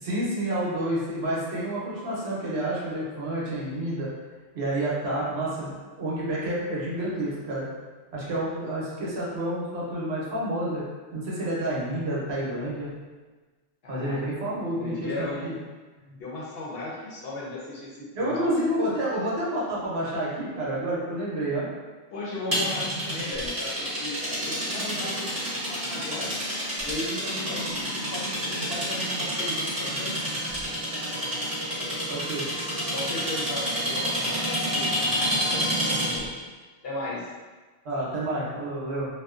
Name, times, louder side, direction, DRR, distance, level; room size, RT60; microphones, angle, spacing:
voice 1, 0.0-4.1 4.5-7.7 8.1-10.8 11.1-12.9 13.9-15.5 18.1-21.7 32.1-32.5 37.8-39.1, right 1 dB, 65° right, -6 dB, 0.9 m, -29 dB
voice 2, 13.8-14.2 14.5-15.5 16.2-18.5 22.1-26.3 26.8-30.2 32.9-36.3 36.8-37.3, left 2 dB, 65° left, -5 dB, 0.7 m, -36 dB
sound 1, 22.5-36.3, equal, 20° right, 0.7 m, -29 dB
2.5 x 2.1 x 2.3 m, 1.3 s
omnidirectional pair, 1.2 m